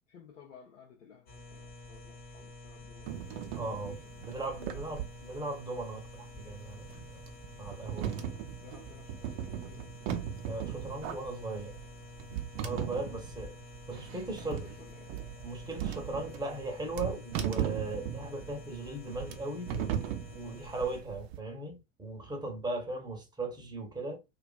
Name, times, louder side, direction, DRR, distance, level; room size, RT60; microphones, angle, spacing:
voice 1, 0.1-3.7 4.0-4.2 4.6-4.8 8.6-9.9 14.4-15.2 20.7-20.8, left 6 dB, 75° left, 0.6 m, -56 dB
sound 1, 1.3-21.0, left 2 dB, 25° left, 0.6 m, -49 dB
sound 2, 3.0-21.4, right 9 dB, 55° right, 0.6 m, -38 dB
voice 2, 3.5-8.1 10.5-11.8 12.6-13.6 13.9-14.7 15.4-19.7 20.3-24.2, right 2 dB, 10° right, 0.7 m, -38 dB
2.4 x 2.4 x 2.2 m
figure-of-eight pair, 75°, 37 cm